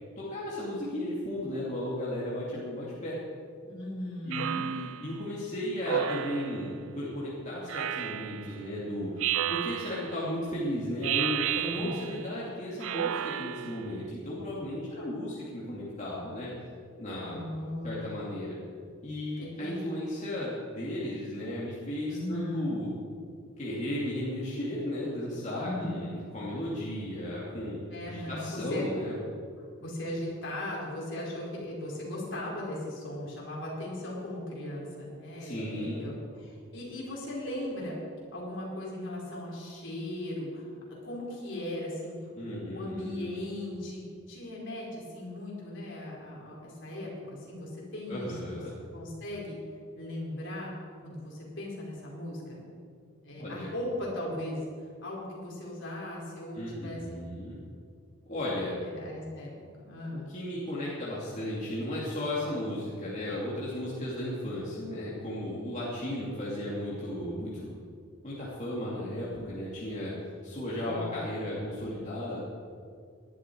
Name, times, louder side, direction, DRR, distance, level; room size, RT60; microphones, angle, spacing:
voice 1, 0.2-3.2 4.2-16.5 17.0-17.4 17.8-18.6 19.0-22.9 23.6-27.8 28.1-29.1 35.4-36.1 42.4-43.3 48.1-48.7 53.3-53.7 56.5-57.6 58.3-58.8 60.3-67.7 68.2-70.1 70.4-72.5, left 1 dB, 35° left, -7 dB, 2.7 m, -35 dB
voice 2, 3.6-4.6 11.7-12.1 17.2-18.2 19.4-19.7 22.1-22.7 25.6-26.0 27.9-29.0 29.8-37.9 38.3-40.7 41.0-44.0 44.3-48.4 48.9-49.6 49.9-50.7 51.0-52.6 53.2-54.6 55.0-57.2 58.8-59.5 59.8-60.3 70.8-71.2, left 1 dB, 60° left, -4 dB, 4.6 m, -38 dB
Speech synthesizer, 4.3-5.1 5.8-6.7 7.7-8.5 9.2-10.2 11.0-12.2 12.8-13.8, right 11 dB, 75° right, 0.4 m, -32 dB
19.0 x 11.5 x 4.7 m, 2.2 s
head